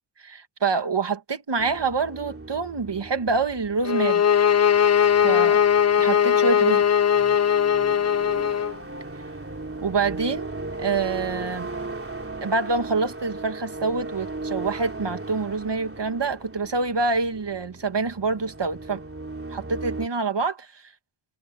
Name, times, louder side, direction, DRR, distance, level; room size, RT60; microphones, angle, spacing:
voice 1, 0.2-4.2 5.2-5.6 6.0-6.8 9.8-10.5 10.8-11.7 12.4-19.0 19.5-20.8, right 4 dB, 55° right, 2.1 m, -26 dB
sound 1, 1.6-20.1, right 2 dB, 25° right, 3.4 m, -37 dB
sound 2, 3.8-8.7, left 8 dB, 35° left, 0.4 m, -19 dB
wide cardioid pair, 85°, 50 cm